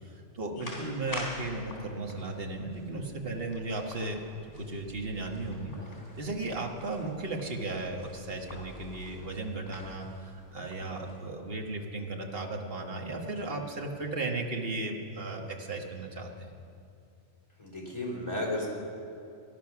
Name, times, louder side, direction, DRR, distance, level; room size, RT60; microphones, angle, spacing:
voice 1, 0.0-5.7 6.2-16.5, right 2 dB, 50° right, 2 dB, 1.7 m, -35 dB
sound 1, 0.5-11.2, left 1 dB, 50° left, 3.8 m, -47 dB
voice 2, 13.2-13.5 17.6-18.7, left 1 dB, 20° left, -3 dB, 3.4 m, -34 dB
18.5 x 11.5 x 6.1 m, 2.6 s
omnidirectional pair, 1.2 m